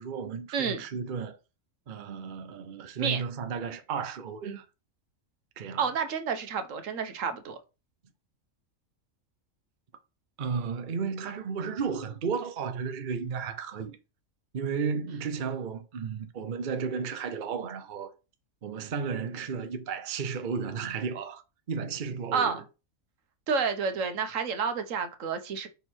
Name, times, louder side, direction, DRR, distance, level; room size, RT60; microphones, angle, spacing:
voice 1, 0.0-1.4 1.9-4.7 5.6-5.8 10.4-14.0 14.5-18.1 18.6-21.4 21.7-22.6, right 6 dB, 45° right, 0.7 m, -33 dB
voice 2, 0.5-0.8 3.0-3.2 4.4-4.6 5.8-7.6 22.3-22.6 23.5-25.7, right 6 dB, 65° right, 1.2 m, -30 dB
5.4 x 4.5 x 4.4 m
omnidirectional pair, 1.5 m